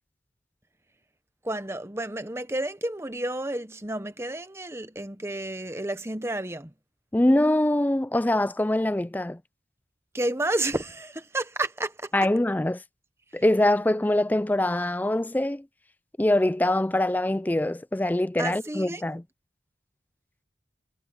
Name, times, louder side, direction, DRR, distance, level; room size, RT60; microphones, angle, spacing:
voice 1, 1.4-6.7 10.1-12.1 18.4-19.2, right 1 dB, 15° right, 1.0 m, -31 dB
voice 2, 7.1-9.4 12.1-12.8 13.3-15.7 16.2-19.2, left 1 dB, 10° left, 0.4 m, -23 dB
head